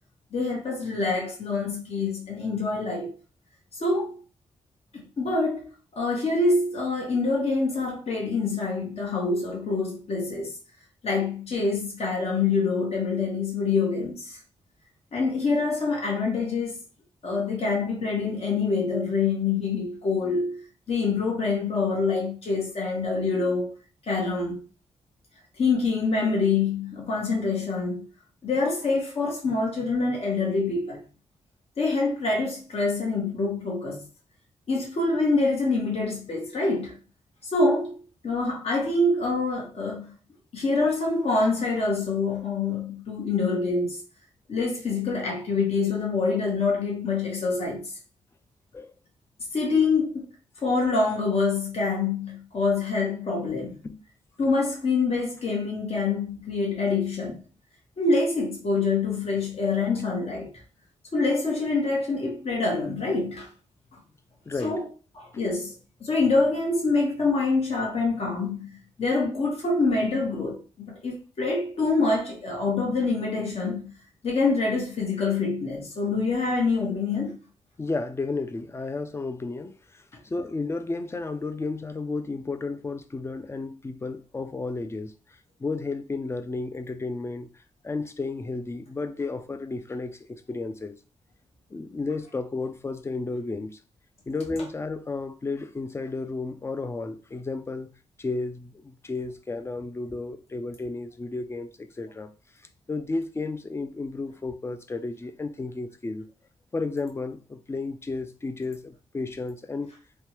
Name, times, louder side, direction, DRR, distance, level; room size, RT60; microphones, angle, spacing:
voice 1, 0.3-3.1 3.8-4.2 4.9-5.7 5.9-10.5 11.0-14.3 15.1-16.8 17.2-23.7 24.1-24.6 25.6-28.1 28.4-31.0 31.8-34.0 34.7-37.0 37.5-40.2 40.5-44.0 44.5-47.9 49.5-50.3 50.6-53.8 54.4-57.4 58.0-60.5 61.1-63.5 64.6-64.8 65.1-65.7 66.0-68.7 69.0-73.9 74.2-77.4, left 3 dB, 60° left, 1.2 m, -26 dB
voice 2, 64.5-64.8 77.8-79.8 80.2-85.1 85.6-87.5 87.8-91.0 91.7-93.8 94.3-97.9 98.2-102.3 102.9-106.3 106.7-109.9, left 3 dB, 20° left, 0.3 m, -32 dB
3.4 x 2.2 x 2.9 m
cardioid pair, 95°, 12 cm